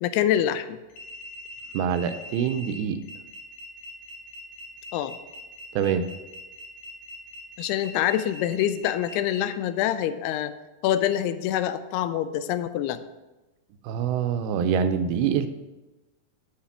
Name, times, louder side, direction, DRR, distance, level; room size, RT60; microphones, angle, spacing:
voice 1, 0.0-0.8 4.9-5.2 7.6-10.5 10.8-13.0, left 11 dB, 85° left, 11 dB, 2.5 m, -25 dB
sound 1, 0.9-9.4, left 1 dB, 65° left, 3.0 m, -42 dB
voice 2, 1.7-3.0 5.7-6.0 13.8-15.5, right 7 dB, 85° right, 9 dB, 2.4 m, -25 dB
10.0 x 5.6 x 5.7 m, 1.1 s
omnidirectional pair, 4.6 m